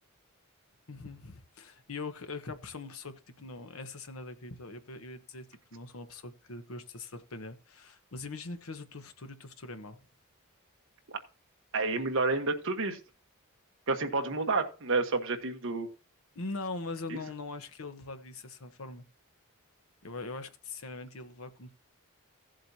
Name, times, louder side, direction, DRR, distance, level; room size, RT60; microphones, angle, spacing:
voice 1, 0.9-10.0 16.3-19.0 20.0-21.7, left 3 dB, 70° left, 1.1 m, -42 dB
voice 2, 11.7-13.0 13.9-15.9 17.1-17.2, right 3 dB, 60° right, 1.4 m, -29 dB
16.0 x 7.6 x 2.8 m
head